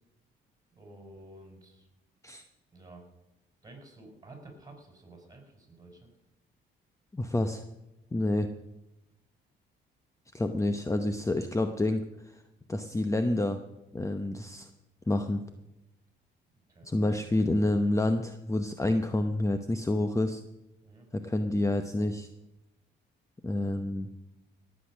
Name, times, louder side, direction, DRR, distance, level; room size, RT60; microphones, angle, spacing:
voice 1, 0.7-1.9 2.7-3.1 3.6-6.1 16.7-16.9 20.8-21.1, right 2 dB, 20° right, 3 dB, 5.4 m, -51 dB
voice 2, 7.1-7.6 8.1-8.5 10.3-12.4 12.7-13.6 13.9-14.7 15.1-15.4 16.8-20.4 21.1-22.3 23.4-24.1, left 1 dB, 15° left, 8 dB, 0.9 m, -28 dB
17.5 x 8.3 x 6.2 m, 0.95 s
cardioid pair, 75°, 20 cm